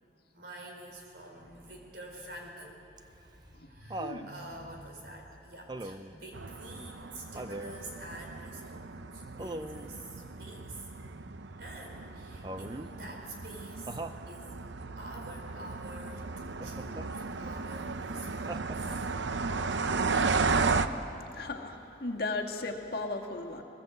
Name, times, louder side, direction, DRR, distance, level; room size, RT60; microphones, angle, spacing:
voice 1, 0.3-10.9 11.6-14.0 14.3-14.6 15.0-19.1, right 1 dB, 60° right, 1 dB, 4.2 m, -47 dB
Laughter, 3.0-4.3 5.7-6.2 7.3-7.8 9.4-9.9 12.4-12.9 13.9-14.2 16.6-17.1 18.5-19.1 20.5-20.6, right 2 dB, 25° right, 0.6 m, -40 dB
sound 1, 6.3-20.9, right 4 dB, 80° right, 0.8 m, -34 dB
voice 2, 21.3-23.6, left 2 dB, 55° left, 1 dB, 1.9 m, -36 dB
21.0 x 20.0 x 8.0 m, 2.8 s
head